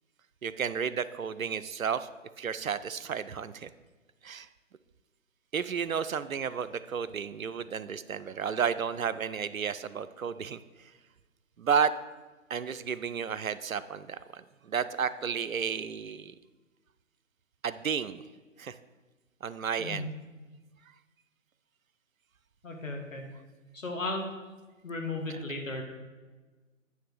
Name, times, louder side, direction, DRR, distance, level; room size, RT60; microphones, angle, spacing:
voice 1, 0.4-2.1 2.4-3.7 4.2-4.5 5.5-10.9 11.6-11.9 12.5-16.3 17.6-18.3 18.6-18.8 19.4-20.1 25.3-25.4, right 7 dB, 90° right, 14 dB, 0.5 m, -32 dB
voice 2, 19.8-20.1 22.6-23.3 23.7-24.3 24.8-25.8, left 2 dB, 70° left, 2 dB, 1.8 m, -35 dB
9.2 x 3.4 x 6.3 m, 1.3 s
figure-of-eight pair, 145°, 40 cm